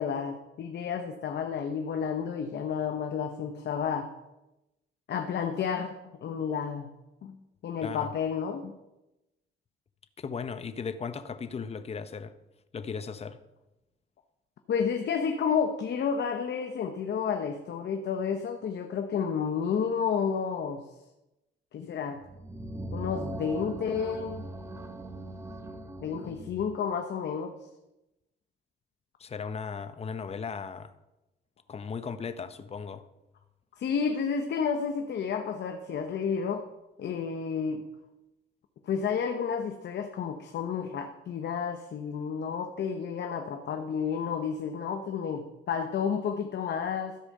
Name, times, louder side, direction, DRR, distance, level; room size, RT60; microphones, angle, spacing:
voice 1, 0.0-4.1 5.1-6.9 7.2-8.7 14.7-20.8 21.7-22.2 22.9-24.5 26.0-27.6 33.8-36.6 37.0-37.8 38.8-47.2, left 6 dB, 60° left, 0.9 m, -31 dB
voice 2, 7.8-8.1 10.2-12.3 12.7-13.4 29.2-30.9 31.7-33.1, left 6 dB, 30° left, 0.7 m, -36 dB
sound 1, 22.2-26.8, right 1 dB, 15° right, 0.8 m, -40 dB
13.0 x 4.9 x 6.5 m
cardioid pair, 90°, 20 cm